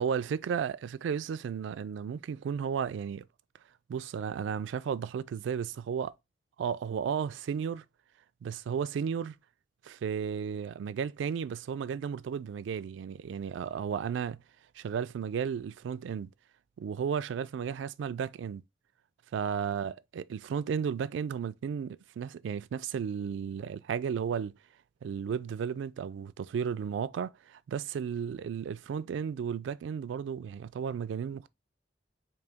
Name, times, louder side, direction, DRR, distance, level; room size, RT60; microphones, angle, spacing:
voice 1, 0.0-3.3 3.9-6.1 6.6-7.8 8.4-9.4 9.8-14.4 14.8-16.3 16.8-18.6 19.3-24.5 25.0-31.5, right 7 dB, 85° right, 0.3 m, -34 dB
3.9 x 2.7 x 3.4 m
head